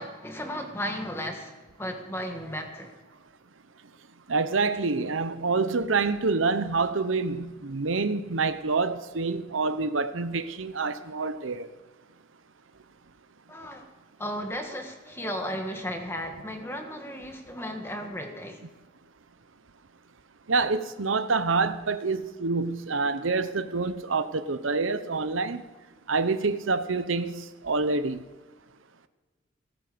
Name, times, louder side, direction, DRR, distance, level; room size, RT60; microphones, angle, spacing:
voice 1, 0.0-2.9 13.5-13.8 14.2-18.6, equal, 10° left, 1.6 m, -35 dB
voice 2, 4.3-11.7 20.5-25.6 26.1-28.2, right 4 dB, 90° right, 0.9 m, -27 dB
17.5 x 9.0 x 6.9 m
head